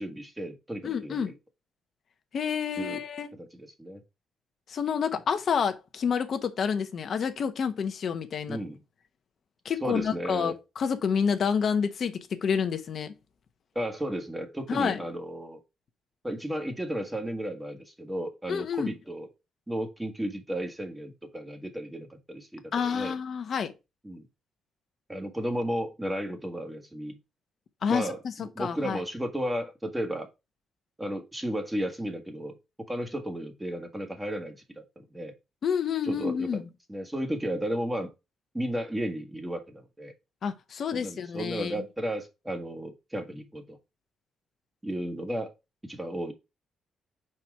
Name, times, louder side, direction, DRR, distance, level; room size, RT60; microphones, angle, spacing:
voice 1, 0.0-1.3 2.8-3.0 3.5-4.0 8.5-8.8 9.8-10.5 13.7-15.6 16.2-19.3 19.7-23.2 24.0-24.3 25.1-27.2 27.9-30.3 31.0-32.6 32.9-35.3 36.1-36.6 36.9-38.1 38.5-40.1 40.9-43.8 44.8-45.5 45.8-46.3, equal, 10° right, 1.4 m, -34 dB
voice 2, 0.8-1.3 2.3-3.3 4.7-8.6 9.6-13.1 14.7-15.0 18.5-18.9 22.7-23.7 27.8-29.0 35.6-36.6 40.4-41.8, left 6 dB, 55° left, 0.9 m, -29 dB
4.8 x 4.3 x 4.7 m
cardioid pair, 90°, 0 cm